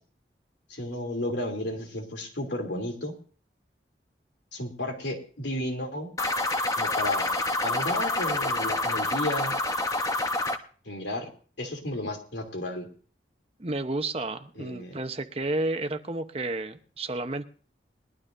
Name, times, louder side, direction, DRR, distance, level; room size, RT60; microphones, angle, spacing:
voice 1, 0.7-3.1 4.5-6.1 6.8-7.3 7.6-9.5 10.8-11.3 11.6-12.9 14.6-15.0, left 1 dB, 85° left, 3 dB, 2.8 m, -33 dB
sound 1, 6.2-10.6, left 2 dB, 20° left, 0.9 m, -27 dB
voice 2, 13.6-17.4, right 2 dB, 35° right, 8 dB, 0.9 m, -31 dB
21.0 x 12.5 x 2.6 m, 0.41 s
head